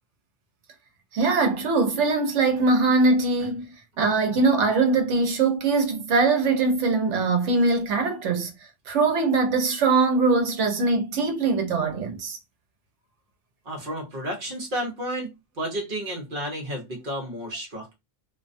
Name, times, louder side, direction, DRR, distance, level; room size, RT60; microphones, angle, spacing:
voice 1, 1.1-3.6 4.0-8.5 8.9-12.4, right 3 dB, 70° right, 1.0 m, -22 dB
voice 2, 13.7-18.0, equal, 50° right, 0.8 m, -32 dB
2.5 x 2.2 x 2.5 m
omnidirectional pair, 1.3 m